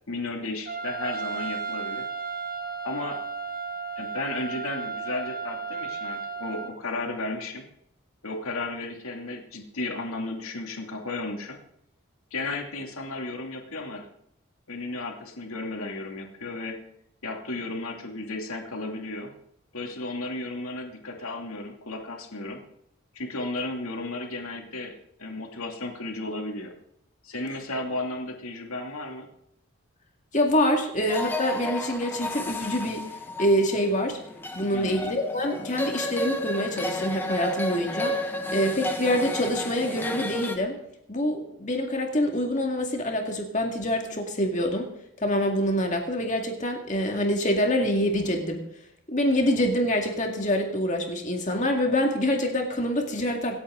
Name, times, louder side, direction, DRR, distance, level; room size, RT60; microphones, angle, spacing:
voice 1, 0.1-2.1 2.8-3.2 4.0-7.6 8.2-11.6 12.3-14.1 14.7-16.8 17.2-19.3 19.7-22.6 23.1-26.7 27.2-29.3 34.7-35.0, left 2 dB, 80° left, 2 dB, 2.8 m, -34 dB
Trumpet, 0.7-6.7, right 4 dB, 40° right, 1.5 m, -34 dB
voice 2, 30.3-33.1 33.4-34.2 34.6-38.2 38.5-40.8 41.1-44.9 45.2-48.6 49.1-53.6, equal, 35° left, 2 dB, 2.1 m, -25 dB
sound 1, 31.1-40.6, left 1 dB, 10° left, 1.2 m, -32 dB
26.5 x 8.9 x 3.9 m, 0.76 s
head